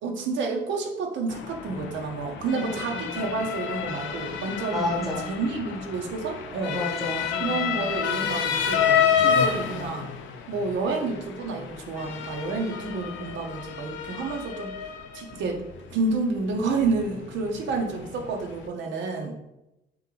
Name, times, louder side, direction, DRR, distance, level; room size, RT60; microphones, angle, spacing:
voice 1, 0.0-6.8 7.4-10.1 10.5-14.7 15.1-15.6 15.9-19.3, right 3 dB, 75° right, 2 dB, 0.7 m, -29 dB
Motor vehicle (road) / Siren, 1.3-18.7, left 8 dB, 90° left, 0.5 m, -30 dB
voice 2, 2.4-3.2 4.7-5.3 6.7-7.8 12.7-13.2, left 1 dB, ahead, -2 dB, 1.1 m, -32 dB
3.8 x 3.0 x 3.7 m, 0.91 s
cardioid pair, 140°, 19 cm